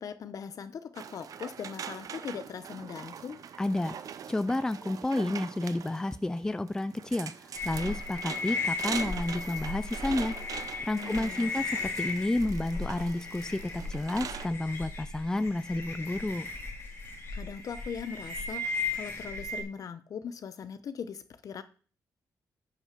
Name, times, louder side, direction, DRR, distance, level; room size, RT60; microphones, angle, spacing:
voice 1, 0.0-3.4 10.9-11.5 17.3-21.6, left 7 dB, 60° left, 12 dB, 0.9 m, -40 dB
sound 1, 1.0-14.5, right 7 dB, 60° right, 0.6 m, -42 dB
voice 2, 3.6-4.0 4.3-10.4 10.9-16.5, left 2 dB, 10° left, 13 dB, 0.4 m, -31 dB
sound 2, 7.5-19.6, left 3 dB, 40° left, 2.5 m, -36 dB
9.1 x 5.8 x 6.1 m, 0.40 s
wide cardioid pair, 135°, 7 cm